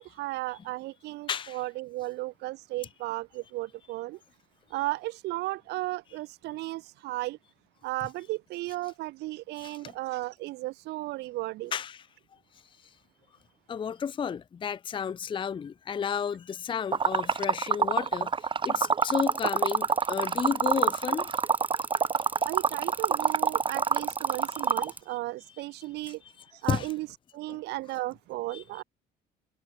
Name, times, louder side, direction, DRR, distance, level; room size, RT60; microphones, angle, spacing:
voice 1, 0.0-4.2 4.7-7.4 7.8-11.7 22.5-26.2 26.5-27.1 27.3-28.8, right 19 dB, 85° right, 1.9 m, -35 dB
voice 2, 1.3-1.6 9.6-9.9 11.7-12.0 13.7-21.3 24.7-24.9 26.7-26.9 28.5-28.6, left 7 dB, 30° left, 0.6 m, -32 dB
Liquid, 16.9-24.9, right 6 dB, 30° right, 1.4 m, -26 dB
sound 1, 19.0-25.0, right 2 dB, 10° right, 6.5 m, -42 dB
cardioid pair, 110°, 17 cm